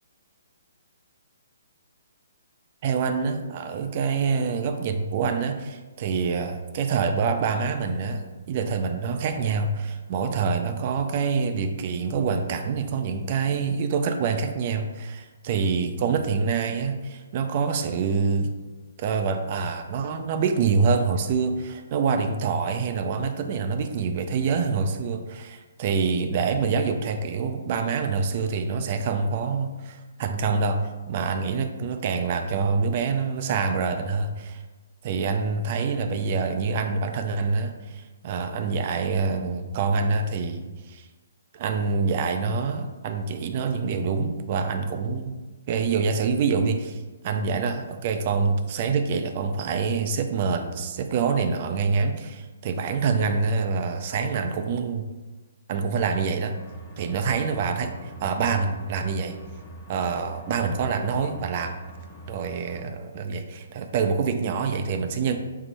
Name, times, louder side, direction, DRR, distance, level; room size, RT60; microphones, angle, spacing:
voice 1, 2.8-18.5 19.0-34.6 35.0-41.1 41.5-45.3 45.7-55.1 55.7-56.6 57.0-59.4 59.9-61.8 62.3-65.4, right 5 dB, 40° right, 6 dB, 0.3 m, -26 dB
sound 1, 56.5-62.8, right 1 dB, 5° left, 0.9 m, -43 dB
4.5 x 2.0 x 3.9 m, 1.2 s
hypercardioid pair, 145°, 0 cm